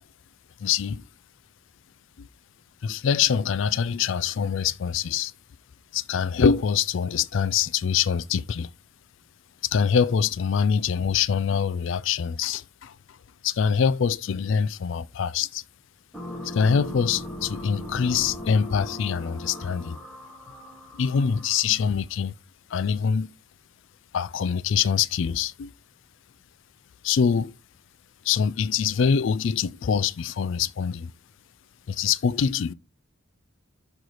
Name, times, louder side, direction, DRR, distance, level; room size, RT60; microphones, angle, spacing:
voice 1, 0.6-1.0 2.2-2.3 2.8-5.3 5.9-8.7 9.7-12.9 13.4-15.6 16.4-20.0 20.9-22.3 22.7-23.3 24.1-25.7 27.0-27.5 28.2-31.1 31.9-32.7, left 7 dB, 65° left, 0.4 m, -24 dB
sound 1, 16.1-21.8, left 1 dB, ahead, 1.8 m, -38 dB
6.5 x 4.6 x 4.0 m
head